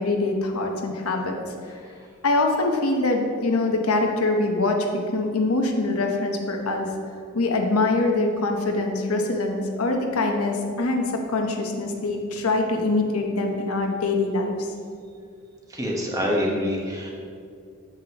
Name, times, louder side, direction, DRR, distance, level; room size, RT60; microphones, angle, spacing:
voice 1, 0.0-1.4 2.2-4.8 5.1-6.9 7.3-11.0 11.3-14.5, left 2 dB, 85° left, 2 dB, 0.9 m, -24 dB
voice 2, 15.7-17.1, equal, 15° right, -2 dB, 1.1 m, -25 dB
8.7 x 7.5 x 3.0 m, 2.3 s
head